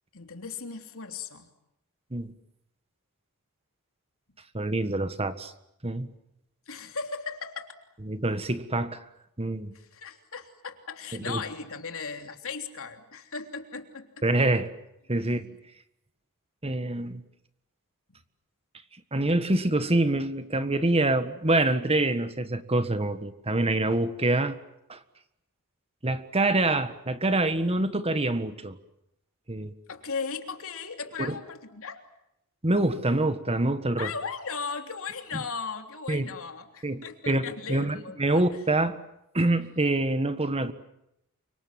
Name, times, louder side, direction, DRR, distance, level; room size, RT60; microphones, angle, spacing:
voice 1, 0.1-1.5 6.7-7.7 9.7-14.2 15.2-15.6 29.9-32.0 34.0-38.4, left 5 dB, 65° left, 3.3 m, -37 dB
voice 2, 4.5-5.5 5.8-6.1 8.0-9.0 9.4-9.7 11.1-11.4 14.2-14.7 15.1-15.6 16.6-17.2 19.1-24.6 24.9-25.0 26.0-28.8 29.5-29.7 31.2-31.4 32.6-34.1 35.3-35.4 36.1-36.3 36.8-39.0 39.3-40.7, right 2 dB, 25° right, 1.6 m, -26 dB
29.5 x 25.5 x 7.6 m
head